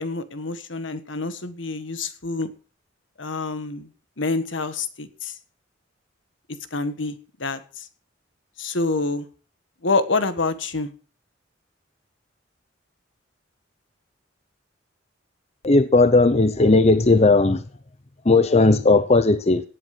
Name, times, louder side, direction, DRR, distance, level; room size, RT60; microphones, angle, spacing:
voice 1, 0.0-2.5 3.2-3.9 4.2-5.3 6.7-7.9 8.6-9.3 9.8-10.9, left 3 dB, 75° left, 1.5 m, -27 dB
voice 2, 15.6-17.6 18.3-19.6, left 3 dB, 35° left, 0.7 m, -16 dB
17.5 x 8.1 x 6.0 m
head